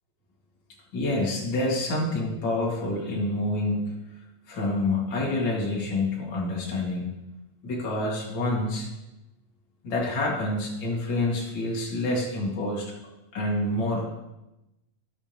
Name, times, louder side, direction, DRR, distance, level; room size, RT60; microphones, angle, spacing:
voice 1, 0.9-4.0 4.5-7.1 7.6-8.9 9.8-12.9 13.3-14.1, left 2 dB, 40° left, -5 dB, 2.9 m, -27 dB
18.5 x 7.0 x 3.1 m, 0.93 s
omnidirectional pair, 3.8 m